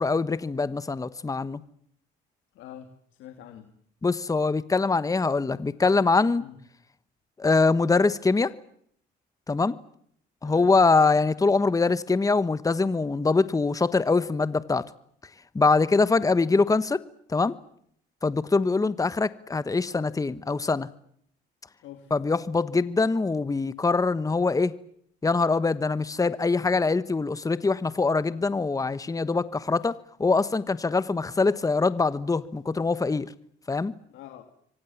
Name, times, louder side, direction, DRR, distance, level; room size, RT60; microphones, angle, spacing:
voice 1, 0.0-1.6 4.0-6.4 7.4-8.5 9.5-9.8 10.4-14.9 15.5-17.0 17.3-17.5 18.2-20.9 22.1-24.8 25.2-33.3 33.7-33.9, left 3 dB, 15° left, 1.2 m, -23 dB
voice 2, 2.5-2.9 3.2-3.7 6.4-6.6 10.4-10.7 21.8-22.1 34.1-34.4, left 11 dB, 75° left, 2.9 m, -45 dB
27.5 x 24.5 x 7.3 m
cardioid pair, 95°, 20 cm